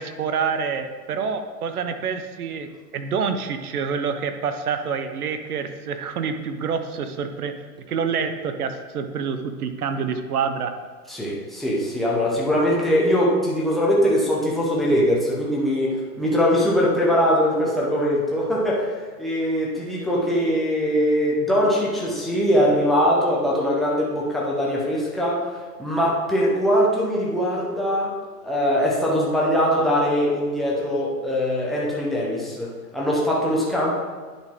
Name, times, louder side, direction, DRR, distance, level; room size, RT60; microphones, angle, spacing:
voice 1, 0.0-7.5 7.9-10.7, right 6 dB, 65° right, 8 dB, 0.9 m, -27 dB
voice 2, 11.1-28.1 28.4-33.9, equal, ahead, -5 dB, 0.8 m, -22 dB
10.5 x 4.1 x 3.7 m, 1.5 s
hypercardioid pair, 135°, 48 cm